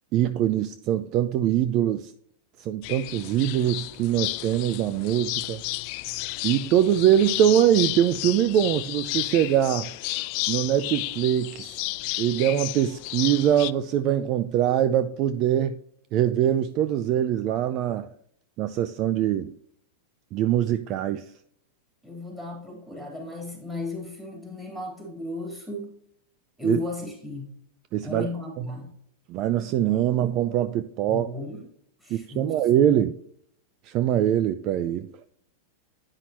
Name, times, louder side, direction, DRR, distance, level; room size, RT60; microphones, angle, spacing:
voice 1, 0.1-2.1 2.6-5.6 6.4-9.9 10.5-11.8 12.2-15.8 16.1-18.1 18.6-19.5 20.3-21.2 26.6-26.8 27.9-28.3 28.6-28.7 29.3-31.3 32.1-33.1 33.8-35.1, right 11 dB, 40° right, 0.4 m, -23 dB
sound 1, 2.8-13.7, left 21 dB, 50° left, 0.3 m, -32 dB
voice 2, 22.0-25.9 26.6-27.6 28.0-28.9 31.1-31.7 32.0-32.7, left 2 dB, 5° right, 3.4 m, -35 dB
9.7 x 5.7 x 3.0 m
supercardioid pair, 135°, 0 cm